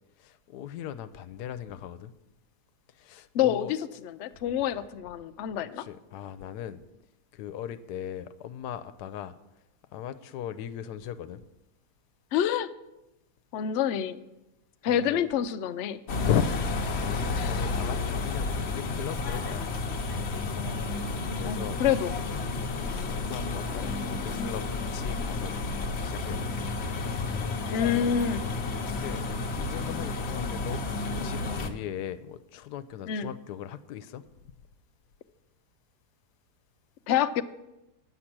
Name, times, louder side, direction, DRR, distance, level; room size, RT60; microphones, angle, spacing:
voice 1, 0.2-2.1 2.9-3.7 5.6-6.8 7.3-9.3 9.9-11.4 14.9-15.2 16.2-20.2 20.9-21.8 23.0-25.6 26.0-26.5 28.9-29.2 29.5-34.2, left 10 dB, 85° left, 1.2 m, -37 dB
voice 2, 3.3-5.8 12.3-12.7 13.5-14.2 14.8-16.0 17.4-17.5 21.5-22.1 27.7-28.5 33.1-33.3 37.1-37.4, left 9 dB, 70° left, 0.7 m, -27 dB
sound 1, 16.1-31.7, left 3 dB, 50° left, 1.0 m, -31 dB
9.9 x 7.7 x 6.0 m
omnidirectional pair, 1.7 m